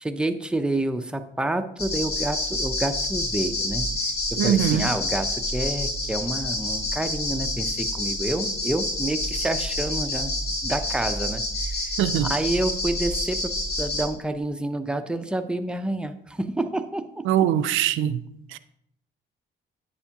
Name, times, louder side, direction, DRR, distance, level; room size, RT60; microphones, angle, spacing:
voice 1, 0.0-3.9 4.4-10.3 10.6-11.9 12.2-13.5 13.8-17.5, right 1 dB, 5° right, 0.6 m, -28 dB
sound 1, 1.8-14.1, left 1 dB, 55° left, 2.6 m, -28 dB
voice 2, 4.4-4.9 12.0-12.3 17.3-18.2 18.5-18.6, right 10 dB, 85° right, 0.4 m, -22 dB
9.7 x 7.0 x 2.8 m
cardioid pair, 90°, 20 cm